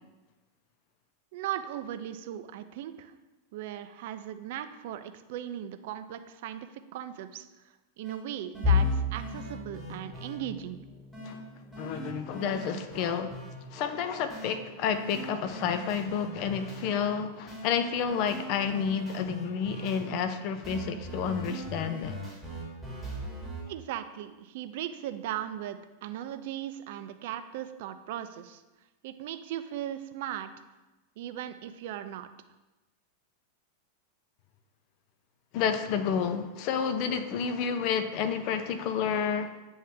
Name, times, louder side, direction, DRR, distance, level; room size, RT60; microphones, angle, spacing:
voice 1, 1.3-3.1 3.5-6.7 6.9-7.4 8.0-10.8 23.7-28.6 29.0-30.5 31.2-32.3, right 11 dB, 50° right, 10 dB, 0.4 m, -38 dB
sound 1, 8.0-8.2 8.5-10.3 11.1-11.3 11.7-13.5 14.3-14.5 14.9-16.8 17.5-17.7 18.1-20.0 20.6-23.6, right 1 dB, 10° left, 2.2 m, -41 dB
sound 2, 8.6-20.5 20.9-21.2 21.5-21.7 22.6-23.0, left 4 dB, 25° right, 1.1 m, -36 dB
voice 2, 11.8-13.4 13.7-22.2 35.5-39.5, left 7 dB, 45° left, 9 dB, 0.4 m, -30 dB
8.9 x 3.1 x 3.7 m, 1.1 s
figure-of-eight pair, 90°, 0 cm